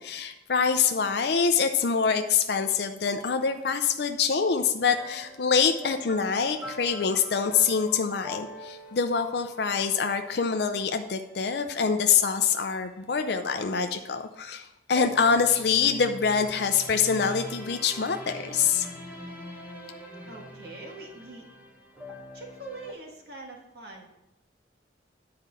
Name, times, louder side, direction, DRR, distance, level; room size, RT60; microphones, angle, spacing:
voice 1, 0.0-18.9, left 6 dB, 60° left, 6 dB, 0.5 m, -25 dB
sound 1, 3.1-4.1 4.8-13.0 14.9-22.9, left 1 dB, 10° right, 1.3 m, -44 dB
voice 2, 20.3-21.5 22.3-24.1, right 2 dB, 60° right, 0 dB, 1.7 m, -43 dB
10.5 x 4.7 x 6.8 m, 0.91 s
head